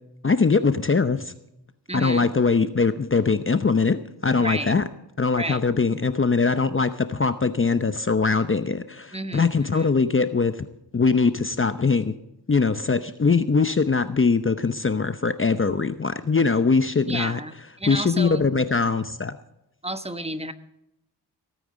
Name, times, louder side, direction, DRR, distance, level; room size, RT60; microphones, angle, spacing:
voice 1, 0.2-1.3 1.9-4.8 5.2-10.7 10.9-12.1 12.5-17.4 17.9-19.4, left 4 dB, 30° left, 11 dB, 0.8 m, -22 dB
voice 2, 1.9-2.3 4.4-4.7 5.3-5.6 9.1-9.9 17.1-18.5 19.8-20.5, right 1 dB, 15° right, 10 dB, 1.2 m, -32 dB
17.0 x 9.3 x 5.1 m, 0.84 s
cardioid pair, 50°, 43 cm